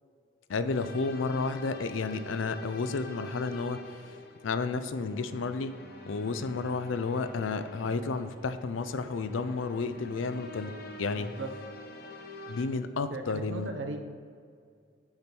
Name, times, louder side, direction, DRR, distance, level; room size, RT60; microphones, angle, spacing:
voice 1, 0.5-4.2 4.4-5.8 6.1-11.3 12.5-13.7, left 4 dB, 80° left, 11 dB, 0.4 m, -32 dB
sound 1, 0.7-12.7, left 1 dB, 50° left, 0.9 m, -46 dB
voice 2, 11.1-11.5 13.1-14.0, right 2 dB, 65° right, 5 dB, 0.7 m, -37 dB
8.5 x 6.0 x 4.4 m, 2.2 s
head